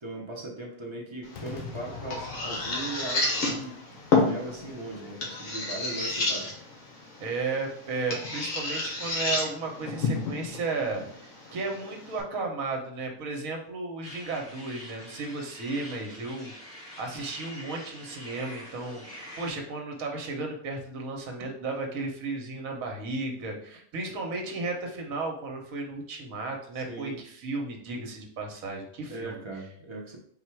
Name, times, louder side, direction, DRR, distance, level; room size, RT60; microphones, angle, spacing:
voice 1, 0.0-6.5 26.7-27.2 29.1-30.2, right 2 dB, 30° right, -1 dB, 0.5 m, -39 dB
sound 1, 1.2-12.2, left 3 dB, 65° left, 1.5 m, -31 dB
Crowd / Fireworks, 1.3-6.6, left 4 dB, 85° left, 1.2 m, -44 dB
voice 2, 7.2-29.4, right 3 dB, 70° right, 2 dB, 1.2 m, -34 dB
sound 2, 14.0-19.5, equal, 30° left, 1.9 m, -45 dB
4.0 x 2.4 x 4.4 m, 0.63 s
omnidirectional pair, 1.5 m